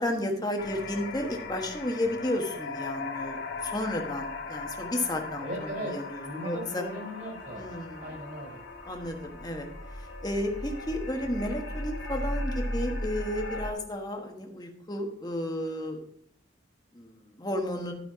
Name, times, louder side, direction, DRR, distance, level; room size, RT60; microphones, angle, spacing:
voice 1, 0.0-6.8 7.6-8.1 8.8-9.7 9.9-16.0 16.9-17.9, left 1 dB, 20° left, 3 dB, 1.2 m, -33 dB
sound 1, 0.6-13.7, left 2 dB, 60° left, 1.7 m, -37 dB
voice 2, 5.4-5.9 6.2-8.6, equal, 50° right, 1 dB, 4.4 m, -38 dB
11.5 x 5.6 x 4.7 m, 0.69 s
head